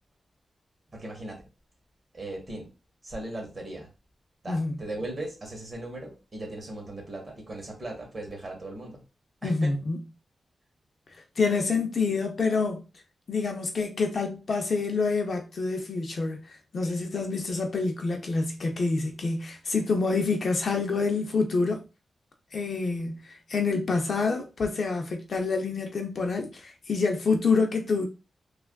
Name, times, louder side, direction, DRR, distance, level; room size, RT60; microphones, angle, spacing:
voice 1, 0.9-1.5 2.1-2.7 3.0-3.9 4.4-9.0 9.4-9.7, right 1 dB, 30° right, 1.1 m, -38 dB
voice 2, 9.4-10.0 11.1-12.8 13.3-21.8 22.5-28.1, left 4 dB, 45° left, 0.5 m, -27 dB
3.3 x 2.4 x 2.2 m
wide cardioid pair, 150°, 0 cm